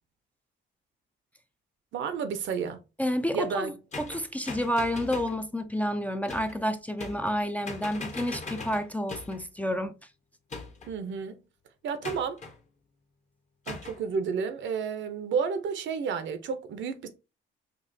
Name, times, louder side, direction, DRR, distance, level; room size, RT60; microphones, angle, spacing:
voice 1, 1.9-2.8 3.3-3.7 10.9-11.4 11.8-12.4 13.7-17.1, right 6 dB, 70° right, 0.7 m, -31 dB
voice 2, 3.0-9.9, equal, 5° left, 0.4 m, -30 dB
sound 1, 3.9-5.4 6.3-6.6 7.0-7.4 7.7-9.5 10.5-11.0 12.0-12.6 13.7-14.0, left 3 dB, 35° left, 1.0 m, -40 dB
5.2 x 2.4 x 2.7 m
cardioid pair, 90°, 20 cm